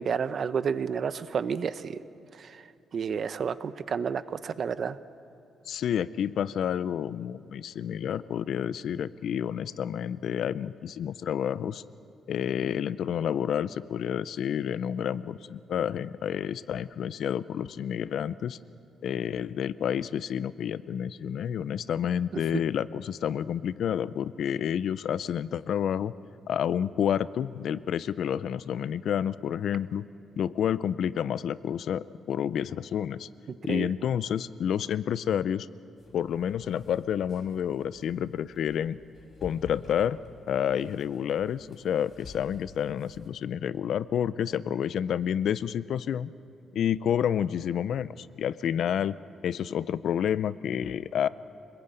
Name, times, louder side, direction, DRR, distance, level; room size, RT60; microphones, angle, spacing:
voice 1, 0.0-2.0 2.3-2.7 2.9-5.0 22.3-22.6 33.5-33.9, right 6 dB, 45° right, 13 dB, 0.8 m, -31 dB
voice 2, 5.7-11.8 12.3-18.6 19.0-26.1 26.5-30.0 30.4-33.3 33.6-35.7 36.1-39.0 39.4-40.2 40.5-46.3 46.7-49.2 49.4-51.3, left 9 dB, 65° left, 17 dB, 0.5 m, -29 dB
sound 1, 36.0-43.3, left 4 dB, 35° left, 4.2 m, -51 dB
26.5 x 20.5 x 9.1 m, 2.7 s
cardioid pair, 155°, 0 cm